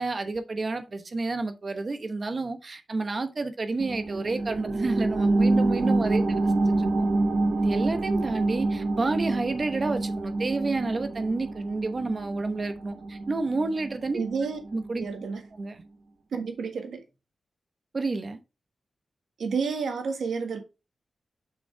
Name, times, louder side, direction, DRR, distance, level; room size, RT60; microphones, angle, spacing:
voice 1, 0.0-6.2 6.6-7.1 7.6-14.2 14.7-15.0 15.6-15.8 17.9-18.4, right 3 dB, 35° right, 1.0 m, -30 dB
sound 1, 3.8-14.9 15.3-15.4, right 2 dB, 60° right, 1.1 m, -27 dB
voice 2, 14.1-14.6 15.0-15.4 16.3-17.0 19.4-20.6, right 5 dB, 90° right, 1.6 m, -30 dB
6.4 x 5.5 x 3.3 m
wide cardioid pair, 135°, 0 cm